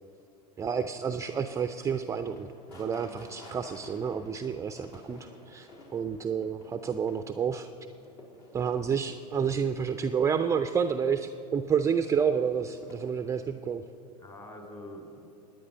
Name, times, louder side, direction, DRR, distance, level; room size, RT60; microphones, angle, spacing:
voice 1, 0.6-7.7 8.5-13.8, right 7 dB, 15° right, 8 dB, 0.4 m, -30 dB
sound 1, 0.9-13.6, left 2 dB, 55° left, 3.4 m, -54 dB
voice 2, 2.9-3.4 14.2-15.3, left 1 dB, 25° left, 3 dB, 3.2 m, -46 dB
22.0 x 9.3 x 5.5 m, 2.8 s
hypercardioid pair, 95°, 20 cm